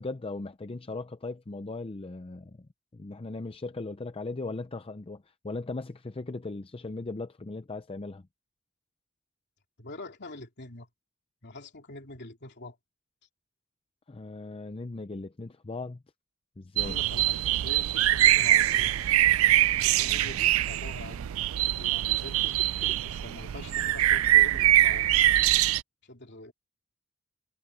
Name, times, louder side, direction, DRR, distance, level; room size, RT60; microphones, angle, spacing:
voice 1, 0.0-8.3 14.1-16.0 16.6-17.0, left 3 dB, 25° left, 0.5 m, -38 dB
voice 2, 9.8-10.9 11.4-12.8 16.8-19.2 19.8-25.1 26.0-26.5, left 2 dB, 55° left, 3.0 m, -45 dB
sound 1, 16.8-25.8, right 14 dB, 70° right, 0.4 m, -23 dB
head